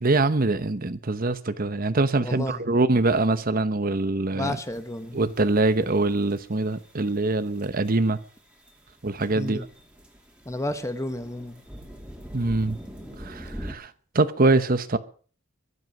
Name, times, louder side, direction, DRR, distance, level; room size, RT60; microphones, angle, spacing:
voice 1, 0.0-4.6 5.1-8.2 9.0-9.6 12.3-12.8 13.2-15.0, right 2 dB, 45° right, 1.0 m, -24 dB
voice 2, 2.2-2.6 4.3-5.2 9.3-9.7 10.4-11.6, left 1 dB, 15° left, 1.4 m, -31 dB
sound 1, 4.4-13.7, equal, 5° right, 3.0 m, -45 dB
23.0 x 8.3 x 6.1 m
head